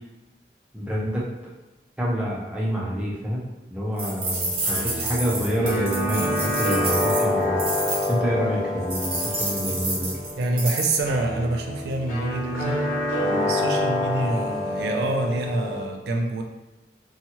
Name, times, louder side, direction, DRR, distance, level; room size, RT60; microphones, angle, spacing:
voice 1, 0.7-1.3 2.0-7.6 8.1-10.2 12.3-12.4 12.7-12.8, equal, 5° right, -6 dB, 0.5 m, -27 dB
sound 1, 4.0-8.1 8.9-11.0, right 2 dB, 30° right, 0.8 m, -29 dB
sound 2, 4.3-15.8, left 1 dB, 45° left, 1.1 m, -28 dB
voice 2, 10.4-12.8 13.2-16.4, right 2 dB, 65° right, 2 dB, 0.3 m, -26 dB
2.8 x 2.3 x 2.8 m, 1.0 s
head